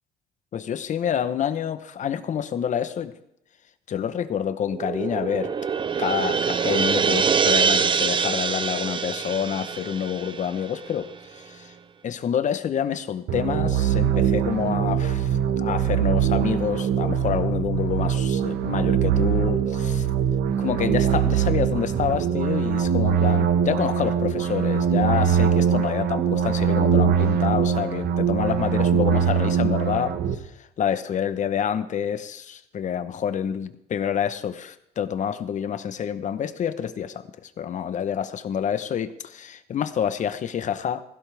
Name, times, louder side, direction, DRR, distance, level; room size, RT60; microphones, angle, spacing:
voice 1, 0.5-3.1 3.9-5.5 6.0-11.1 11.5-11.7 12.0-15.3 15.6-20.1 20.6-30.1 30.8-41.0, left 8 dB, 45° left, 12 dB, 1.0 m, -27 dB
sound 1, 4.6-11.2, right 6 dB, 30° right, 0.6 m, -25 dB
sound 2, 13.3-30.4, right 8 dB, 70° right, 1.3 m, -22 dB
16.5 x 16.0 x 3.5 m, 0.79 s
cardioid pair, 110°, 17 cm